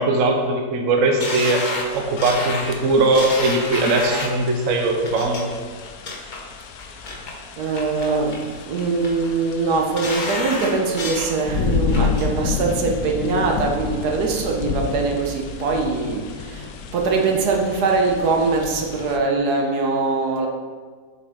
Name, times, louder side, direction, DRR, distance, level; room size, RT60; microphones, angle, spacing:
voice 1, 0.0-1.6 1.9-5.5, right 2 dB, 60° right, 2 dB, 1.1 m, -20 dB
sound 1, 1.2-4.4 5.0-5.4 5.8-6.4 6.8-7.3 7.7-8.4 8.8-9.3 9.7-11.3 11.7-12.3 12.7-12.8, left 2 dB, 40° left, 0.8 m, -30 dB
sound 2, 1.8-19.2, left 5 dB, 70° left, 1.0 m, -31 dB
voice 2, 7.6-20.5, right 4 dB, 75° right, 1 dB, 1.4 m, -22 dB
6.8 x 4.6 x 4.9 m, 1.5 s
omnidirectional pair, 1.7 m